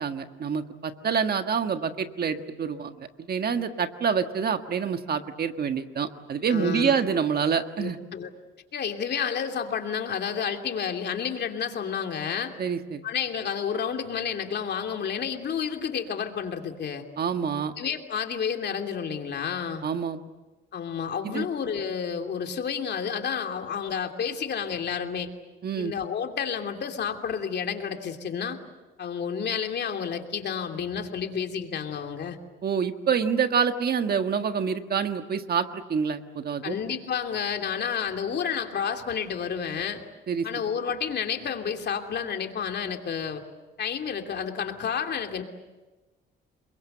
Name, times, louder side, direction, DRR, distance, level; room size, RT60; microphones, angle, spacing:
voice 1, 0.0-8.0 12.6-13.0 17.2-17.7 19.8-20.2 21.2-21.5 25.6-25.9 32.6-36.8 40.3-40.5, right 6 dB, 50° right, 7 dB, 1.6 m, -27 dB
voice 2, 6.5-7.0 7.8-8.3 8.7-12.5 13.0-17.0 17.8-19.8 20.7-25.3 25.8-28.6 29.0-32.4 36.6-40.0 40.4-43.4 43.8-45.4, left 7 dB, 60° left, 4 dB, 2.9 m, -30 dB
28.5 x 22.0 x 8.0 m, 1.2 s
cardioid pair, 90°, 20 cm